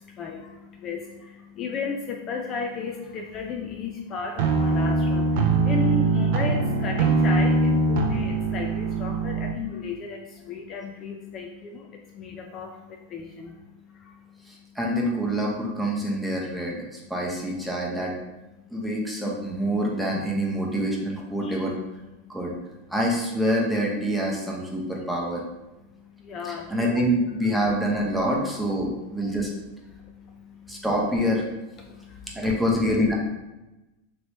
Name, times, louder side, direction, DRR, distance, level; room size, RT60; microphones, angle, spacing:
voice 1, 0.0-14.7 18.7-18.8 21.4-21.6 22.2-22.4 25.8-27.0 29.2-29.3 29.9-30.9 31.8-32.6, left 4 dB, 35° left, 2 dB, 0.4 m, -35 dB
sound 1, 4.4-9.5, right 3 dB, 65° right, 0.5 m, -22 dB
voice 2, 14.5-18.1 18.7-21.8 22.3-22.5 22.9-25.4 26.4-29.5 30.7-31.4 32.3-33.2, equal, ahead, -3 dB, 0.8 m, -26 dB
3.0 x 3.0 x 2.9 m, 1.0 s
hypercardioid pair, 115°, 0 cm